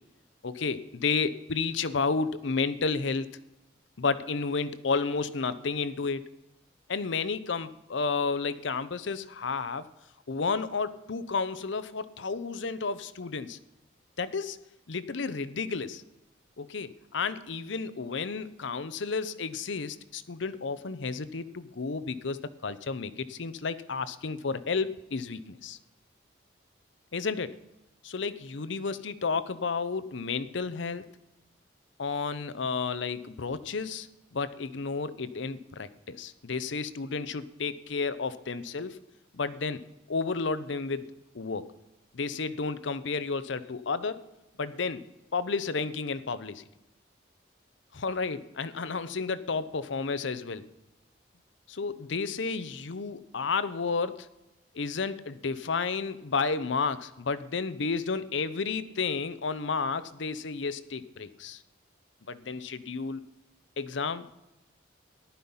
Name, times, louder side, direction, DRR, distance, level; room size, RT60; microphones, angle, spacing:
voice 1, 0.4-3.3 4.0-6.2 6.9-9.9 10.3-13.6 14.2-14.6 14.9-16.0 16.6-25.8 27.1-27.6 28.0-31.0 32.0-39.0 39.3-41.7 42.1-44.2 44.6-45.0 45.3-46.7 47.9-50.6 51.7-54.3 54.7-61.6 62.3-63.2 63.8-64.3, left 4 dB, 70° left, 14 dB, 0.7 m, -32 dB
14.5 x 11.0 x 5.5 m, 0.96 s
head